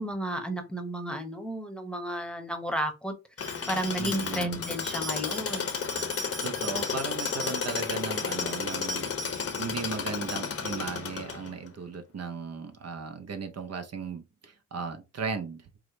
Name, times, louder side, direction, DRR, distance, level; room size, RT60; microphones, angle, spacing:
voice 1, 0.0-3.1 3.7-5.9, right 1 dB, 5° left, 0.9 m, -33 dB
Tools, 3.4-11.7, left 5 dB, 50° left, 0.8 m, -32 dB
voice 2, 4.0-4.6 6.4-15.8, right 5 dB, 55° right, 0.6 m, -37 dB
4.8 x 2.1 x 3.7 m
cardioid pair, 85°, 31 cm